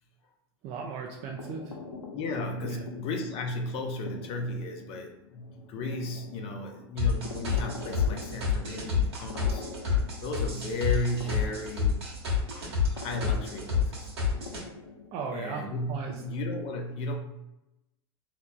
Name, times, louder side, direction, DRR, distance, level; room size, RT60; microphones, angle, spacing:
voice 1, 0.6-1.8 2.6-2.8 15.1-16.1, right 5 dB, 45° right, 1 dB, 0.5 m, -36 dB
sound 1, 1.1-16.6, left 4 dB, 90° left, 0.5 m, -45 dB
voice 2, 2.1-9.6 10.2-12.0 12.9-14.1 15.3-17.2, left 1 dB, 45° left, 3 dB, 0.7 m, -34 dB
sound 2, 7.0-14.6, left 6 dB, 75° right, 1.2 m, -28 dB
4.3 x 2.9 x 2.2 m, 0.91 s
figure-of-eight pair, 80°, 13 cm